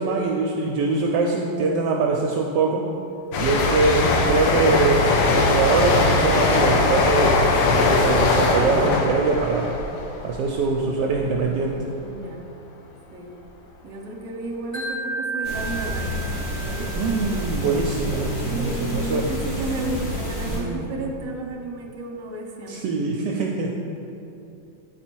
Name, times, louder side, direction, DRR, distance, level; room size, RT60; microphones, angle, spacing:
voice 1, 0.0-2.9 3.4-9.8 10.2-11.8 16.9-19.2 20.5-21.1 22.7-23.7, right 4 dB, 75° right, 0 dB, 1.1 m, -23 dB
sound 1, 3.3-10.8 11.1-11.4, left 3 dB, 80° left, 1.3 m, -20 dB
voice 2, 12.0-12.5 13.1-13.3 13.8-16.3 16.6-17.1 18.5-23.0, right 2 dB, 55° right, 0 dB, 1.2 m, -33 dB
Wind chime, 14.7-17.8, right 3 dB, 15° left, 1.6 m, -33 dB
sound 2, 15.4-20.6, equal, 40° left, 1.4 m, -29 dB
8.8 x 4.1 x 4.5 m, 2.8 s
omnidirectional pair, 2.0 m